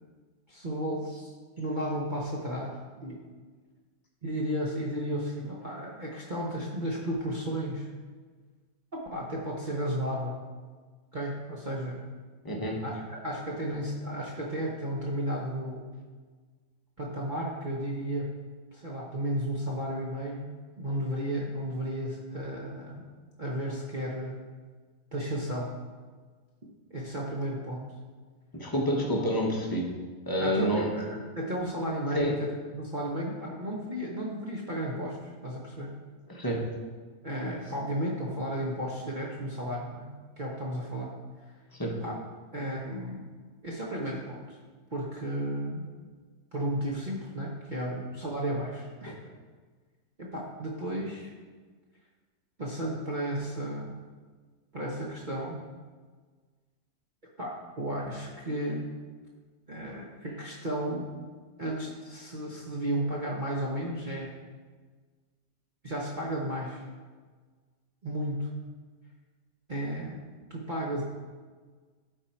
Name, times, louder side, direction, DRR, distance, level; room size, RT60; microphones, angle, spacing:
voice 1, 0.5-3.2 4.2-7.9 9.1-10.4 11.1-12.0 12.8-15.8 17.0-18.3 18.7-20.4 20.8-23.1 23.4-24.4 25.1-25.7 26.9-27.9 30.4-36.0 37.2-40.1 40.4-41.1 41.9-42.2 42.5-43.2 43.6-44.6 44.9-45.9 46.5-49.3 50.2-51.3 52.6-54.0 54.7-55.6 57.4-58.9 59.7-61.1 61.6-64.3 65.8-66.8 68.0-68.5 69.7-70.2 70.5-71.0, right 1 dB, 35° right, -4 dB, 0.9 m, -33 dB
voice 2, 12.4-12.8 28.5-29.9 30.3-30.9 32.1-32.4 36.3-36.6 41.8-41.9, equal, 15° left, -1 dB, 0.9 m, -28 dB
11.5 x 4.2 x 4.4 m, 1.5 s
omnidirectional pair, 1.8 m